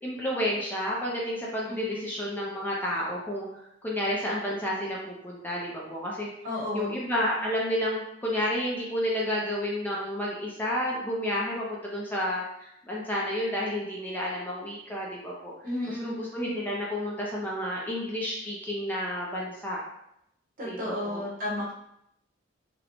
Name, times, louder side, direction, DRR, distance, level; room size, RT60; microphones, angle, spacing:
voice 1, 0.0-3.5 3.8-6.3 6.7-15.5 15.9-19.8 20.6-21.2, equal, 10° left, -5 dB, 0.4 m, -31 dB
voice 2, 6.4-7.0 15.6-16.2 20.6-21.7, left 1 dB, 45° right, -4 dB, 0.8 m, -32 dB
2.5 x 2.0 x 2.9 m, 0.78 s
head